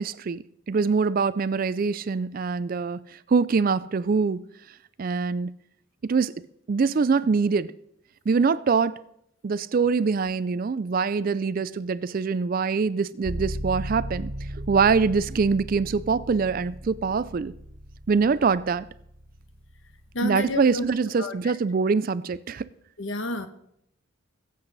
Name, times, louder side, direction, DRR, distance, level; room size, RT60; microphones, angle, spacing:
voice 1, 0.0-3.0 3.3-4.4 5.0-5.5 6.0-6.3 6.7-7.7 8.3-9.0 9.4-14.3 14.6-17.5 18.1-18.9 20.2-22.7, right 5 dB, 40° right, 0.4 m, -24 dB
sound 1, 13.2-21.0, equal, 75° right, 1.5 m, -37 dB
voice 2, 20.1-20.8 21.2-21.3 23.0-23.5, left 1 dB, 65° left, 1.1 m, -30 dB
21.0 x 7.8 x 4.0 m
head